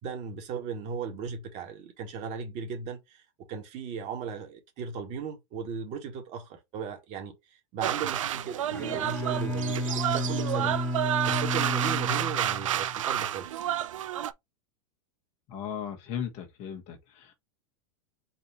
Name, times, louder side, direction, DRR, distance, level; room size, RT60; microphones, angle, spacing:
voice 1, 0.0-7.4 7.7-10.8 11.2-13.7, right 6 dB, 45° right, 1.8 m, -37 dB
sound 1, 7.8-14.3, right 11 dB, 85° right, 0.4 m, -30 dB
Bowed string instrument, 8.6-13.0, left 1 dB, 10° left, 1.3 m, -32 dB
voice 2, 15.5-17.3, left 8 dB, 45° left, 1.4 m, -37 dB
4.4 x 2.7 x 4.1 m
hypercardioid pair, 110°, 16 cm